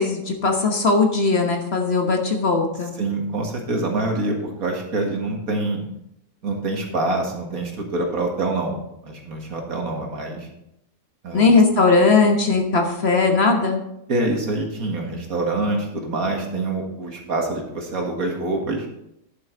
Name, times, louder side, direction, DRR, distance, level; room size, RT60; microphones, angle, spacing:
voice 1, 0.0-2.9 11.3-13.8, left 3 dB, 45° left, 3 dB, 1.3 m, -18 dB
voice 2, 3.0-5.8 6.4-8.8 9.0-10.5 11.2-11.5 14.1-18.9, right 2 dB, 70° right, 1 dB, 2.2 m, -25 dB
11.0 x 7.8 x 3.9 m, 0.81 s
omnidirectional pair, 1.6 m